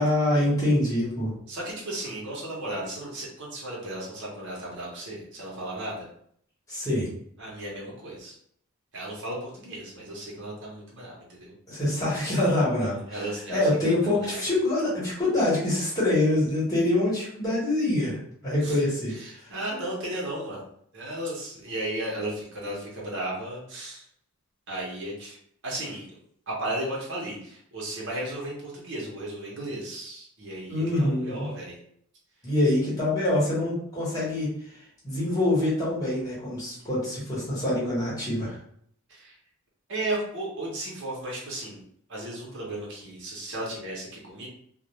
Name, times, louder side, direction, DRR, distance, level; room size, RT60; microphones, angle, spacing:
voice 1, 0.0-1.3 6.7-7.1 11.7-19.1 30.7-31.5 32.4-34.5 35.0-38.5, left 1 dB, 15° left, -7 dB, 1.0 m, -25 dB
voice 2, 1.5-6.1 7.4-8.3 8.9-11.5 13.1-14.5 18.6-18.8 19.1-20.6 20.9-24.0 24.7-25.4 25.6-26.2 26.5-31.8 39.1-39.3 39.9-41.8 42.1-44.5, right 1 dB, 55° right, -4 dB, 0.8 m, -35 dB
2.4 x 2.1 x 3.0 m, 0.66 s
head